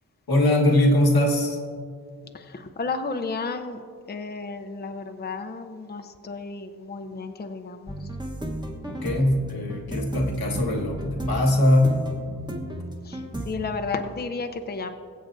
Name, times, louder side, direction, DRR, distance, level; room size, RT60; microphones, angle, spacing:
voice 1, 0.3-1.6 8.9-12.0, left 1 dB, 80° left, 0 dB, 1.5 m, -21 dB
voice 2, 2.3-3.8 4.1-8.1 13.0-14.9, left 4 dB, 30° left, 6 dB, 0.6 m, -33 dB
sound 1, 7.9-13.6, right 1 dB, 10° right, 1.1 m, -32 dB
22.5 x 7.9 x 2.6 m, 2.2 s
wide cardioid pair, 95°, 36 cm